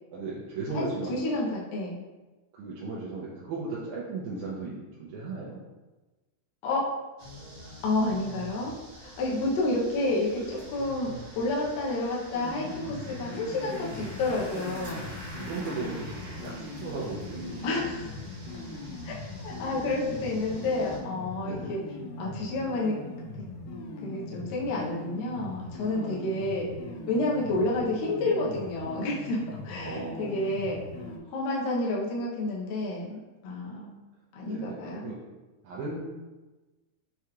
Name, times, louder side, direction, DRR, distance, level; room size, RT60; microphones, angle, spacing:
voice 1, 0.1-1.1 2.5-5.6 15.4-17.7 21.4-21.7 25.8-26.2 29.7-30.3 34.5-35.2 35.6-36.0, right 3 dB, 80° right, -6 dB, 2.1 m, -36 dB
voice 2, 0.7-2.0 6.6-6.9 7.8-8.7 9.0-15.0 17.6-18.2 19.0-21.8 22.2-23.0 24.0-26.7 27.1-30.8 31.3-33.9 34.3-35.1, left 2 dB, 70° left, -4 dB, 1.7 m, -30 dB
sound 1, 7.2-21.0, equal, 45° right, 1.0 m, -46 dB
sound 2, 12.3-31.2, left 2 dB, 90° left, 2.2 m, -40 dB
6.6 x 2.3 x 2.9 m, 1.2 s
omnidirectional pair, 3.6 m